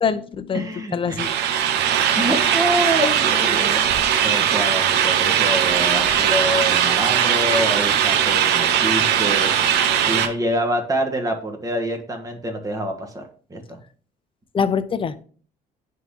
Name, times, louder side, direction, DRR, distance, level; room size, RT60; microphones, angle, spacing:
voice 1, 0.0-1.3 14.5-15.1, left 6 dB, 30° left, 12 dB, 0.6 m, -24 dB
voice 2, 0.5-1.3 2.1-9.5 10.1-13.2 13.5-13.8, right 1 dB, 20° right, 3 dB, 1.4 m, -26 dB
sound 1, 1.2-10.3, right 9 dB, 80° right, 0.8 m, -19 dB
10.5 x 3.8 x 2.8 m, 0.43 s
cardioid pair, 110°, 17 cm